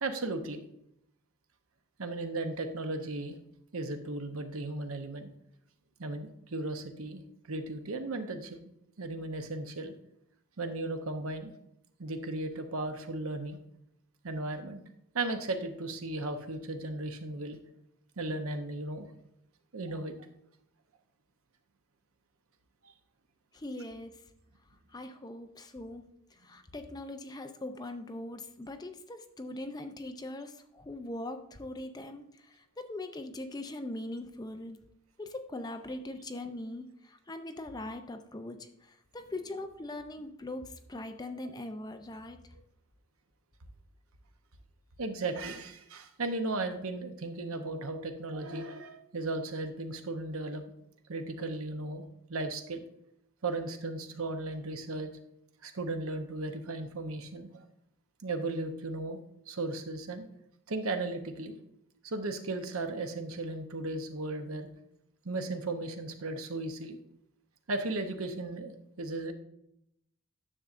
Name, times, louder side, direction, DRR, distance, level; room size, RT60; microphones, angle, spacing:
voice 1, 0.0-0.6 2.0-3.4 3.7-5.3 6.0-8.6 9.0-9.9 10.6-11.5 12.0-13.6 14.2-14.8 15.1-17.6 18.2-19.1 19.7-20.1 22.8-22.9 45.0-50.6 51.1-52.8 53.4-55.1 55.6-57.6 58.2-59.2 59.5-60.3 60.7-61.6 62.0-64.7 65.2-67.0 67.7-69.3, right 2 dB, 80° right, 7 dB, 0.9 m, -36 dB
voice 2, 23.5-24.1 24.9-26.1 26.4-34.8 35.2-42.4, left 1 dB, 20° left, 7 dB, 0.5 m, -41 dB
9.9 x 6.8 x 2.5 m, 0.77 s
head